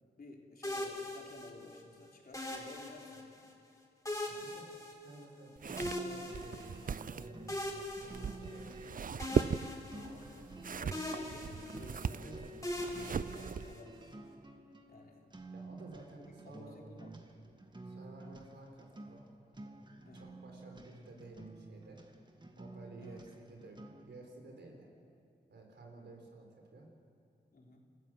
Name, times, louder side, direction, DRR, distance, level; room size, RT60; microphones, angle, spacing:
voice 1, 0.2-3.5 10.7-14.0 14.9-15.2 16.2-17.3 20.0-20.4 23.0-23.3 27.5-27.9, left 2 dB, 55° left, 0 dB, 3.8 m, -54 dB
sound 1, 0.6-1.8 2.3-3.5 4.0-5.4 5.8-7.0 7.5-8.8 9.2-10.6 10.9-12.1 12.6-14.0, left 1 dB, 20° left, 4.5 m, -41 dB
voice 2, 4.3-4.7 5.0-7.4 7.9-10.6 12.1-12.7 15.5-16.8 17.8-19.3 20.1-22.0 22.6-24.9 25.5-26.9, right 2 dB, 80° right, 2 dB, 4.3 m, -54 dB
sound 2, 5.6-24.2, right 2 dB, 25° right, 1.9 m, -51 dB
sound 3, 5.6-13.8, right 6 dB, 50° right, 0.5 m, -39 dB
27.5 x 14.5 x 7.7 m, 2.6 s
cardioid pair, 65°, 18 cm